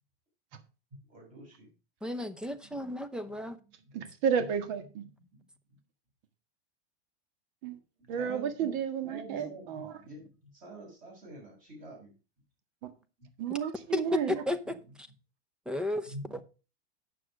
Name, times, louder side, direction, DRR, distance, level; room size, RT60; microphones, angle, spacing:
voice 1, 1.1-1.7 2.4-2.9 3.7-3.9 4.3-4.5 4.8-5.8 8.0-12.1 13.2-13.3 14.6-14.7 16.1-16.4, right 2 dB, 25° right, 6.7 m, -48 dB
voice 2, 2.0-3.6 13.9-14.8 15.7-16.1, left 2 dB, 5° right, 0.6 m, -33 dB
voice 3, 3.9-5.0 7.6-7.8 8.1-9.9 12.8-12.9 13.4-14.4, right 7 dB, 50° right, 1.7 m, -32 dB
9.0 x 6.9 x 5.0 m
supercardioid pair, 150°, 31 cm